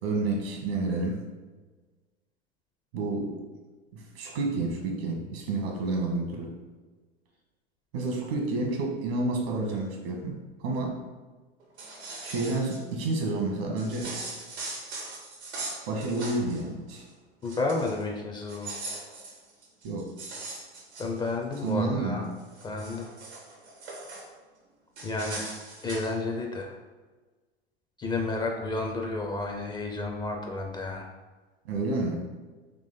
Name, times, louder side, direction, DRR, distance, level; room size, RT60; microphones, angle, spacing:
voice 1, 0.0-1.2 2.9-3.4 3.9-6.5 7.9-11.0 12.2-14.2 15.9-17.0 19.8-20.1 21.6-22.2 31.6-32.3, right 2 dB, 65° right, 1 dB, 1.2 m, -30 dB
sound 1, 11.6-12.8 13.8-16.6 16.9-17.1 17.4-18.0 18.4-21.7 22.2-24.3 25.0-26.1, right 2 dB, 85° right, 1.3 m, -40 dB
voice 2, 17.4-18.7 21.0-22.3 22.6-23.1 25.0-25.4 25.8-26.8 28.0-31.1, left 3 dB, 15° left, 1 dB, 0.4 m, -31 dB
3.8 x 3.0 x 4.2 m, 1.3 s
hypercardioid pair, 90°, 32 cm